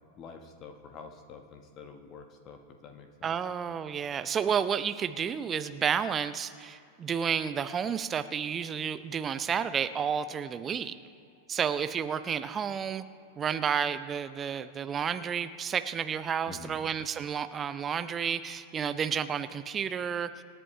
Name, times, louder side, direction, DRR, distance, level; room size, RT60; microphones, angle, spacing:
voice 1, 0.2-3.3 16.5-16.8, left 5 dB, 35° left, 5 dB, 1.2 m, -47 dB
voice 2, 3.2-11.0 11.5-13.0 13.4-20.3, right 7 dB, 25° right, 12 dB, 0.6 m, -31 dB
27.0 x 11.0 x 3.2 m, 2.5 s
figure-of-eight pair, 90°, 0 cm